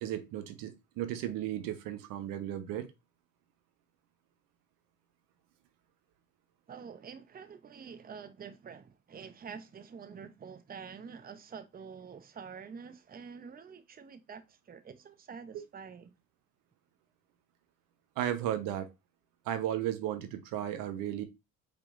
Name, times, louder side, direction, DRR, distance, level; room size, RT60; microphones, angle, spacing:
voice 1, 0.0-2.9 15.5-15.6 18.2-18.9 19.4-21.2, right 11 dB, 85° right, 0.9 m, -35 dB
voice 2, 6.7-16.1, right 6 dB, 25° right, 0.7 m, -47 dB
5.3 x 3.6 x 2.5 m
cardioid pair, 90°, 33 cm